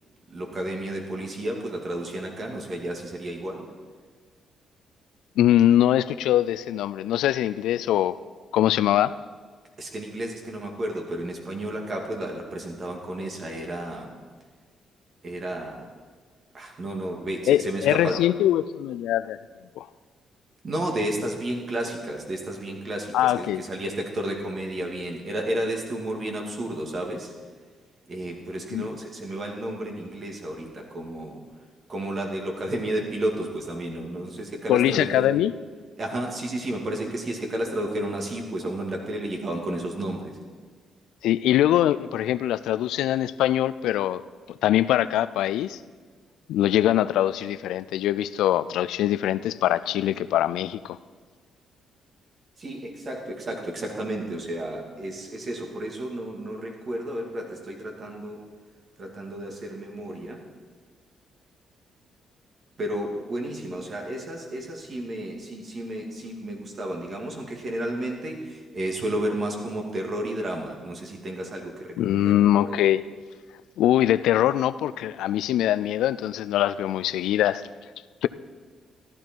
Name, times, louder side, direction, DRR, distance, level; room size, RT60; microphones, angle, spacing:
voice 1, 0.3-3.7 9.8-14.1 15.2-15.8 16.5-18.2 20.6-27.3 28.1-31.4 31.9-35.4 36.0-40.4 52.6-58.4 59.0-60.4 62.8-72.8, right 1 dB, 45° right, 1 dB, 2.5 m, -32 dB
voice 2, 5.4-8.1 8.5-9.1 17.5-19.4 19.8-19.9 23.1-23.6 28.7-28.9 34.7-35.5 41.2-44.2 44.5-45.8 46.5-51.0 72.0-73.0 73.8-77.6 78.2-78.3, left 12 dB, 85° left, 15 dB, 0.3 m, -22 dB
14.0 x 12.0 x 4.6 m, 1.5 s
cardioid pair, 90°, 0 cm